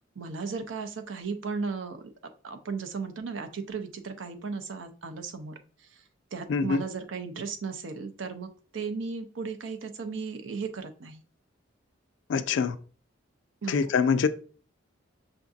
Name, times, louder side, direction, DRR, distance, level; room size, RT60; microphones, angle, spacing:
voice 1, 0.2-5.5 5.9-6.0 6.3-11.2 13.6-13.9, right 5 dB, 70° right, 0.5 m, -36 dB
voice 2, 6.5-6.8 12.3-12.7 13.7-14.3, left 5 dB, 65° left, 0.3 m, -24 dB
5.7 x 2.6 x 2.3 m
head